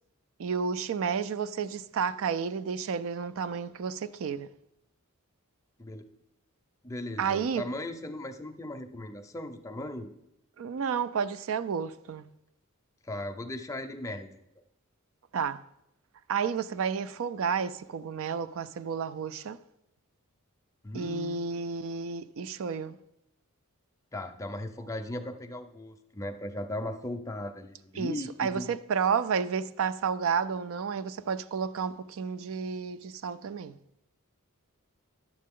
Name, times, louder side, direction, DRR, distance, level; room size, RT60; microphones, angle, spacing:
voice 1, 0.4-4.5 7.2-7.7 10.6-12.3 15.3-15.6 16.3-19.6 20.9-23.0 28.0-33.8, right 6 dB, 65° right, 0.4 m, -31 dB
voice 2, 6.8-10.1 13.1-14.3 20.8-21.4 24.1-28.7, left 1 dB, 15° left, 0.6 m, -37 dB
10.5 x 7.5 x 3.7 m
head